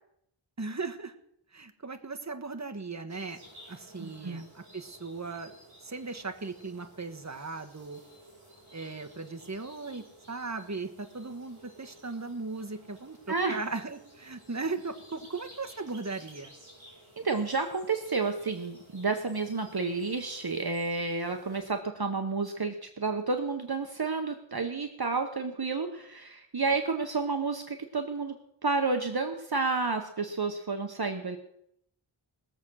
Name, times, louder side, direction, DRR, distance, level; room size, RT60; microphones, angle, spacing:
voice 1, 0.6-1.1 1.5-3.4 3.7-5.6 5.8-8.0 8.7-16.5, right 3 dB, 35° right, 5 dB, 1.4 m, -37 dB
sound 1, 3.1-21.7, right 1 dB, 80° right, 7.2 m, -55 dB
voice 2, 4.0-4.4 13.3-13.6 17.2-28.3 28.6-31.4, right 4 dB, 50° right, 5 dB, 1.1 m, -30 dB
20.0 x 7.5 x 6.3 m, 0.74 s
wide cardioid pair, 55°, 49 cm